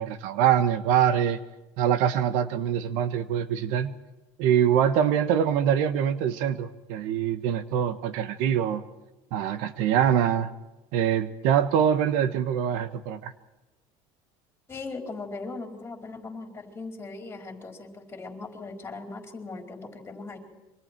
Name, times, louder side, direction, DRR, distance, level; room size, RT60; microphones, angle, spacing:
voice 1, 0.0-1.4 1.8-3.9 4.4-8.8 9.3-10.5 10.9-13.3, right 9 dB, 75° right, 12 dB, 1.3 m, -24 dB
voice 2, 14.7-20.4, left 3 dB, 15° left, 3 dB, 4.6 m, -39 dB
27.0 x 24.5 x 4.6 m, 1.1 s
cardioid pair, 150°, 13 cm